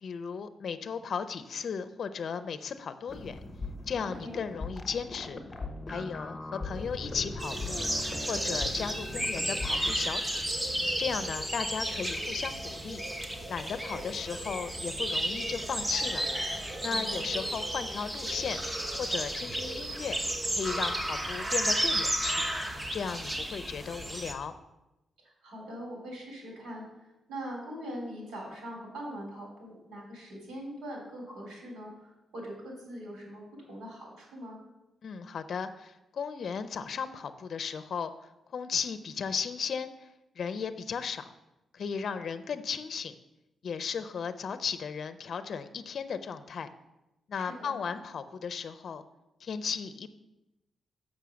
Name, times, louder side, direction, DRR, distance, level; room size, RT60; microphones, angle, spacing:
voice 1, 0.0-3.4 3.9-5.4 5.9-7.9 8.3-10.4 11.0-13.0 13.5-16.2 16.8-18.6 19.0-20.2 20.5-22.5 22.9-24.5 35.0-40.1 40.4-41.3 41.7-43.1 43.6-46.7 47.3-49.0 49.4-50.1, left 6 dB, 60° left, 10 dB, 0.5 m, -35 dB
sound 1, 3.1-10.0, left 2 dB, 20° left, 0.9 m, -39 dB
sound 2, 7.4-24.3, right 1 dB, 15° right, 0.9 m, -33 dB
voice 2, 16.8-17.3 25.4-26.9 27.3-33.4 33.7-34.6 47.3-47.7, equal, 90° right, -2 dB, 3.8 m, -42 dB
7.0 x 6.3 x 6.2 m, 0.95 s
cardioid pair, 110°, 0 cm